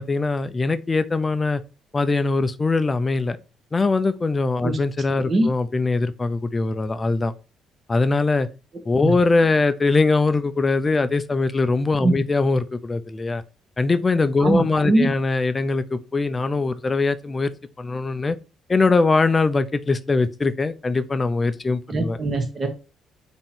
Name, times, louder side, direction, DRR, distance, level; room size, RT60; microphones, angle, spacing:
voice 1, 0.0-1.6 1.9-3.4 3.7-7.3 7.9-8.5 8.9-13.4 13.8-17.5 17.8-18.4 18.7-22.2, left 3 dB, 25° left, 0.4 m, -21 dB
voice 2, 14.4-15.1 21.9-22.7, right 2 dB, 35° right, 1.1 m, -21 dB
3.7 x 3.0 x 4.2 m
supercardioid pair, 75°, 0 cm